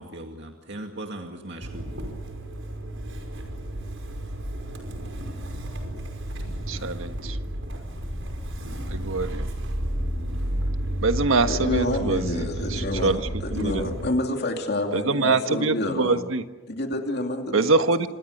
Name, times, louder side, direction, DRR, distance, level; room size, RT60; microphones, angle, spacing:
voice 1, 0.0-2.0, right 1 dB, 60° right, 3 dB, 2.2 m, -38 dB
Motor vehicle (road) / Engine starting, 1.6-14.1, equal, 75° right, 5.4 m, -32 dB
voice 2, 6.7-7.4 8.9-9.4 11.0-12.4 12.7-13.2 13.5-13.7 14.9-16.4 17.5-18.1, right 3 dB, 90° right, 9 dB, 1.5 m, -24 dB
voice 3, 11.5-16.2 16.7-18.1, left 1 dB, 55° left, 3 dB, 2.7 m, -28 dB
27.5 x 26.5 x 6.7 m, 1.1 s
head